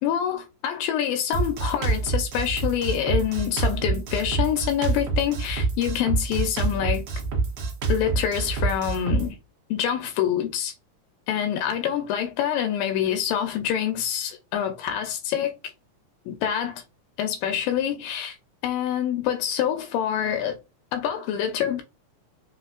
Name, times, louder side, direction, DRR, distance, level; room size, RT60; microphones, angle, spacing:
voice 1, 0.0-7.0 7.9-9.4 9.7-10.7 11.3-15.5 16.3-16.8 17.2-18.4 18.6-20.6 20.9-21.8, left 9 dB, 85° left, 2.3 m, -26 dB
Drum kit, 1.3-9.3, right 4 dB, 80° right, 1.3 m, -26 dB
5.3 x 2.1 x 2.4 m
omnidirectional pair, 3.9 m